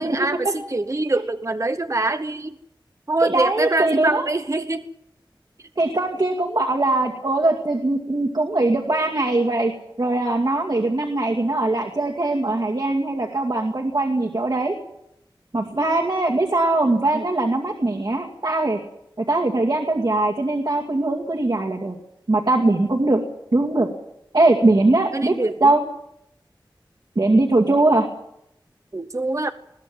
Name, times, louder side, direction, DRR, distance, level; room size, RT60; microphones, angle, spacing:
voice 1, 0.0-2.5 3.1-4.9 17.1-17.2 25.1-25.7 28.9-29.5, right 2 dB, 40° right, 10 dB, 1.0 m, -24 dB
voice 2, 3.2-4.3 5.8-9.7 10.0-14.7 15.5-18.8 19.2-22.0 22.3-23.2 23.5-23.9 24.3-25.3 25.6-25.8 27.2-28.1, right 2 dB, 55° right, 0 dB, 2.4 m, -21 dB
21.0 x 16.5 x 7.7 m, 0.81 s
wide cardioid pair, 65°, 8 cm